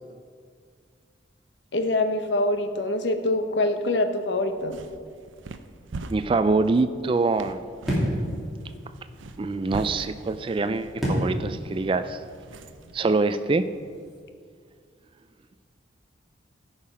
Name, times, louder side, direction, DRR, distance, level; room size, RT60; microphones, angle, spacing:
voice 1, 1.7-4.8, left 2 dB, 65° left, 7 dB, 0.9 m, -25 dB
sound 1, 4.5-13.0, right 3 dB, 85° right, 0.6 m, -42 dB
voice 2, 6.1-7.6 9.4-12.2 12.9-13.7, right 3 dB, 25° right, 11 dB, 0.3 m, -24 dB
sound 2, 7.8-14.2, equal, ahead, 3.0 m, -32 dB
16.5 x 5.7 x 5.0 m, 2.1 s
head